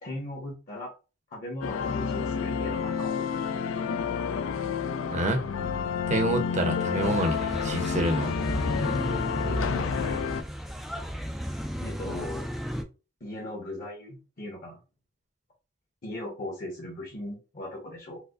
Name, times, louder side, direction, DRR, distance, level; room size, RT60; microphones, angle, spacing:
voice 1, 0.0-0.9 1.3-3.4 6.9-7.2 9.4-10.3 11.8-12.5 13.2-14.8 16.0-18.2, left 1 dB, 45° left, 1.1 m, -38 dB
sound 1, 1.6-10.4, left 6 dB, 90° left, 0.4 m, -29 dB
voice 2, 5.1-5.4 6.1-8.4 8.8-9.0, right 1 dB, 40° right, 0.7 m, -28 dB
sound 2, 7.0-12.8, equal, ahead, 0.4 m, -34 dB
4.7 x 2.1 x 2.4 m
head